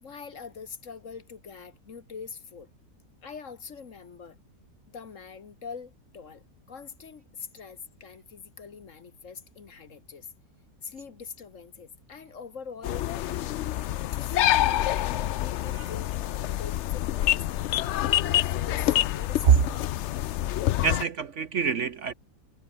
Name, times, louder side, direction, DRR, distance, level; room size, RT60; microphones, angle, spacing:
voice 1, 0.0-2.7 3.2-4.4 4.9-10.3 10.8-19.8, left 6 dB, 50° left, 1.7 m, -43 dB
sound 1, 12.8-21.0, left 13 dB, 85° left, 0.6 m, -27 dB
voice 2, 20.8-22.1, right 8 dB, 50° right, 1.1 m, -24 dB
omnidirectional pair, 1.8 m